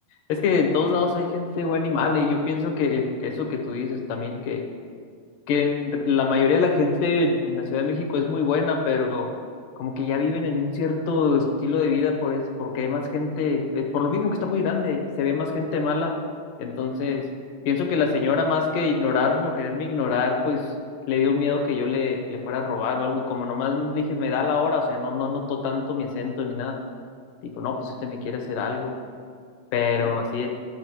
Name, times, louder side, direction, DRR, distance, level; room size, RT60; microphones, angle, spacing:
voice 1, 0.3-4.6 5.5-9.3 9.8-16.1 16.6-17.2 17.7-20.6 21.1-26.8 27.4-28.9 29.7-30.5, left 5 dB, 80° left, 1 dB, 2.4 m, -24 dB
13.5 x 5.9 x 3.1 m, 2.1 s
omnidirectional pair, 3.9 m